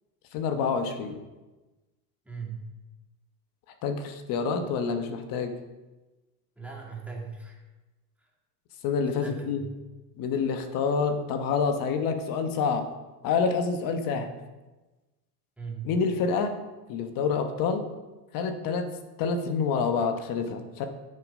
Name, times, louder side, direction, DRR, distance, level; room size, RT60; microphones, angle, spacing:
voice 1, 0.3-1.2 3.8-5.5 8.8-9.6 10.2-12.9 13.2-14.3 15.8-16.6 16.9-17.9 18.3-18.9 19.2-20.9, left 5 dB, 45° left, 7 dB, 1.2 m, -27 dB
voice 2, 2.2-2.7 6.6-7.6 9.2-9.8 15.6-15.9, right 5 dB, 5° right, -2 dB, 2.2 m, -39 dB
9.1 x 6.0 x 5.4 m, 1.1 s
supercardioid pair, 115°, 48 cm